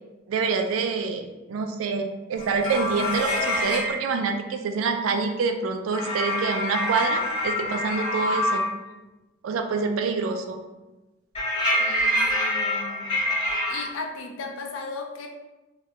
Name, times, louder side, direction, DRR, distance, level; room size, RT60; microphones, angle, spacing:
voice 1, 0.3-8.7 9.4-10.6, right 5 dB, 85° right, 5 dB, 0.3 m, -26 dB
sound 1, 2.4-4.0 5.9-8.7 11.3-13.8, left 1 dB, 25° left, 1.2 m, -26 dB
voice 2, 11.8-13.1 13.4-15.3, left 3 dB, 75° left, 2 dB, 0.5 m, -36 dB
2.8 x 2.2 x 3.2 m, 1.1 s
head